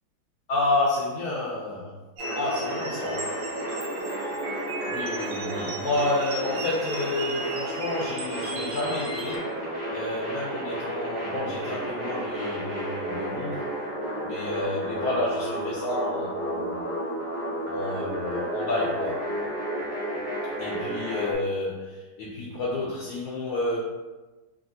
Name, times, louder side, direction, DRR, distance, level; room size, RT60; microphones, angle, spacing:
voice 1, 0.5-1.9 2.3-3.3 4.9-13.7 14.2-17.1 17.7-19.3 20.6-23.8, left 2 dB, 80° left, -5 dB, 0.8 m, -30 dB
sound 1, 2.2-21.3, right 1 dB, 25° right, 0.7 m, -32 dB
sound 2, 2.2-9.4, right 3 dB, 75° right, 1.1 m, -37 dB
3.2 x 2.5 x 2.6 m, 1.2 s
omnidirectional pair, 2.3 m